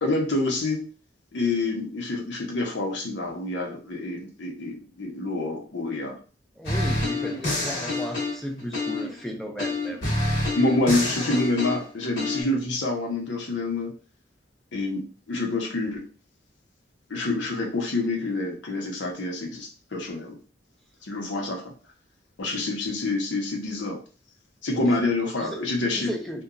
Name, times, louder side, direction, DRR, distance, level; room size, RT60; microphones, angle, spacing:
voice 1, 0.0-0.9 1.3-6.2 10.5-13.9 14.7-16.0 17.1-20.3 21.0-21.6 22.4-24.0 24.6-26.2, left 2 dB, 90° left, 0 dB, 0.7 m, -27 dB
sound 1, 6.6-9.2 9.6-12.4, left 2 dB, 65° left, 1.0 m, -27 dB
voice 2, 6.6-10.0 24.7-24.9 25.4-25.6 25.9-26.4, equal, ahead, 1 dB, 0.4 m, -35 dB
2.8 x 2.2 x 2.5 m, 0.36 s
head